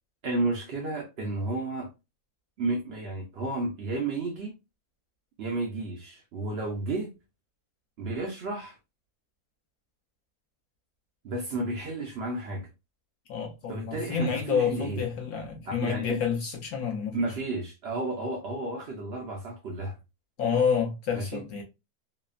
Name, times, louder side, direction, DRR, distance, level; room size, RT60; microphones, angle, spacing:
voice 1, 0.2-1.9 2.6-4.5 5.4-7.1 8.0-8.8 11.2-12.7 13.7-15.0 15.7-16.2 17.1-20.0 21.1-21.4, right 2 dB, 70° right, 0.6 m, -32 dB
voice 2, 13.3-17.2 20.4-21.6, left 7 dB, 70° left, 1.1 m, -28 dB
3.1 x 2.0 x 2.2 m
omnidirectional pair, 1.7 m